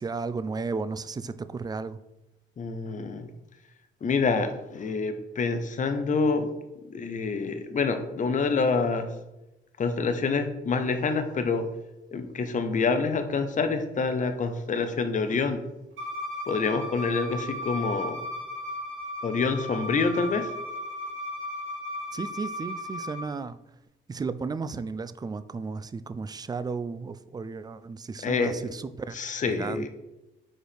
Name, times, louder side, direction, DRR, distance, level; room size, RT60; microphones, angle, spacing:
voice 1, 0.0-2.0 22.1-23.6 24.1-29.2 29.5-29.9, right 4 dB, 20° right, 14 dB, 0.3 m, -34 dB
voice 2, 2.6-3.3 4.0-6.5 6.9-9.1 9.8-11.7 12.1-15.6 16.5-18.2 19.2-20.5 28.2-28.5 29.1-29.9, left 4 dB, 40° left, 8 dB, 0.8 m, -27 dB
Bowed string instrument, 16.0-23.2, left 1 dB, 75° right, 2.0 m, -35 dB
4.7 x 4.4 x 5.1 m, 0.96 s
cardioid pair, 90°, 20 cm